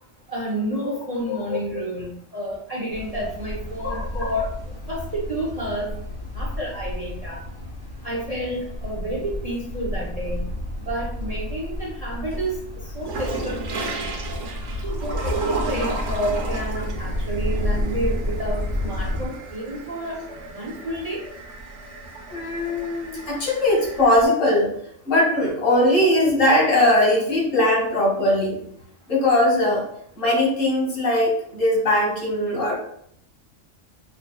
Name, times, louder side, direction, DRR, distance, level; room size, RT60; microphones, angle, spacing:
voice 1, 0.3-4.5 4.9-5.9 6.3-7.4 8.0-10.4 10.9-14.1 14.8-20.2 20.5-21.2, right 1 dB, 40° right, -4 dB, 0.6 m, -30 dB
voice 2, 1.3-1.8 3.8-4.3 22.3-24.7 25.0-28.6 29.1-29.8 30.2-32.7, left 1 dB, 80° left, -2 dB, 1.9 m, -20 dB
sound 1, 2.9-19.3, left 1 dB, 25° left, 1.3 m, -31 dB
sound 2, 10.5-11.5 11.9-24.3, right 2 dB, 70° right, 1.0 m, -34 dB
5.4 x 2.6 x 2.2 m, 0.68 s
omnidirectional pair, 1.3 m